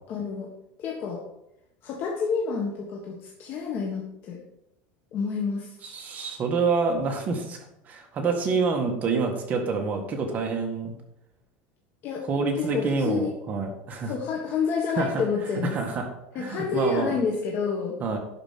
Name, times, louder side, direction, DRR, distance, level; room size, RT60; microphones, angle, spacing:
voice 1, 0.1-0.5 0.8-1.2 1.8-4.4 5.1-5.8 12.0-12.2 12.6-13.3 14.0-15.8 16.3-18.0, left 5 dB, 40° left, 0 dB, 1.6 m, -29 dB
voice 2, 5.8-10.9 12.3-14.1 15.0-15.2 15.7-16.1 16.4-17.1 18.0-18.2, right 4 dB, 30° right, 3 dB, 1.7 m, -27 dB
11.5 x 5.1 x 7.6 m, 0.87 s
supercardioid pair, 150°, 6 cm